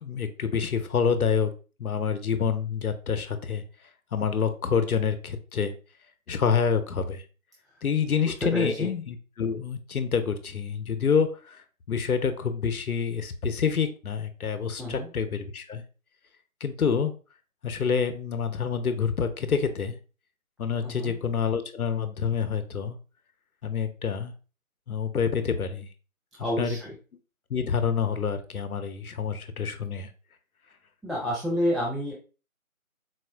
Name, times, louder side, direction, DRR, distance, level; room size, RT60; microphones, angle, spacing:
voice 1, 0.0-1.5 1.8-3.6 4.1-5.7 6.3-7.2 7.8-15.8 16.6-17.1 17.6-20.0 20.6-23.0 23.6-24.3 24.9-25.9 26.6-26.8 27.5-30.1, left 6 dB, 80° left, 9 dB, 0.7 m, -27 dB
voice 2, 8.4-8.9 14.8-15.1 20.8-21.2 26.4-27.0 31.0-32.1, equal, ahead, -4 dB, 0.4 m, -29 dB
4.1 x 2.5 x 2.2 m, 0.35 s
figure-of-eight pair, 170°, 43 cm